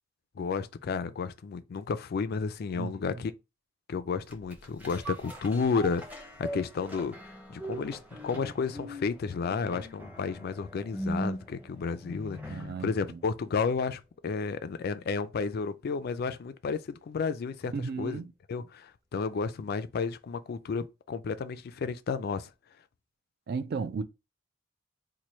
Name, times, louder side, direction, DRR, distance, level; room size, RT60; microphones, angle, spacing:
voice 1, 0.4-3.3 3.9-7.1 7.5-17.7 18.0-18.2 18.5-22.5, left 5 dB, 50° left, 0.3 m, -32 dB
sound 1, 4.3-12.9 13.3-13.4, right 1 dB, 10° right, 0.7 m, -40 dB
voice 2, 12.5-13.2 17.7-18.3 23.5-24.0, right 5 dB, 50° right, 0.3 m, -34 dB
3.1 x 2.2 x 4.2 m
head